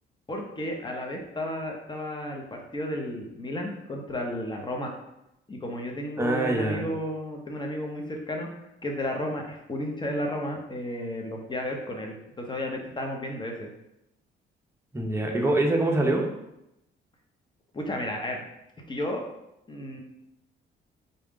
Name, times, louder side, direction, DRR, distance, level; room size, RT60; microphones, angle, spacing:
voice 1, 0.3-4.9 5.5-8.5 8.8-13.7 17.7-18.4 18.9-19.2 19.7-20.0, left 1 dB, 25° left, 1 dB, 0.8 m, -33 dB
voice 2, 6.2-6.9 14.9-16.2, right 2 dB, 15° right, 0 dB, 0.7 m, -24 dB
3.9 x 2.3 x 3.6 m, 0.86 s
cardioid pair, 90°, 20 cm